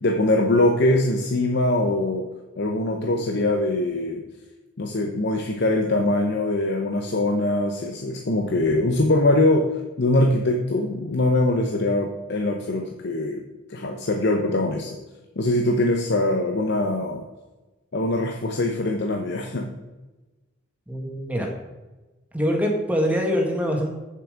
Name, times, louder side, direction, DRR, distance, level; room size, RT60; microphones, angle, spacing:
voice 1, 0.0-2.3 2.6-4.2 4.8-9.7 10.0-13.4 13.7-15.0 15.4-17.2 17.9-19.7, left 2 dB, 60° left, 3 dB, 0.9 m, -22 dB
voice 2, 20.9-21.5 22.3-23.9, equal, 10° right, 0 dB, 1.7 m, -24 dB
8.6 x 7.1 x 5.1 m, 1.1 s
head